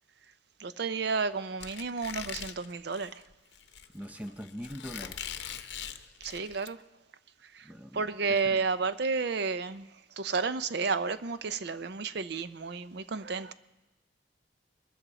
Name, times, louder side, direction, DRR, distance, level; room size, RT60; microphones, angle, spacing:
voice 1, 0.6-3.2 6.2-6.8 7.5-7.7 7.9-9.9 10.2-13.5, right 4 dB, 60° right, 0.5 m, -31 dB
Squeak, 1.6-6.7, left 8 dB, 65° left, 0.8 m, -42 dB
voice 2, 3.9-5.2 5.5-6.0 7.6-8.7, equal, 10° right, 0.6 m, -43 dB
22.0 x 13.0 x 4.0 m
head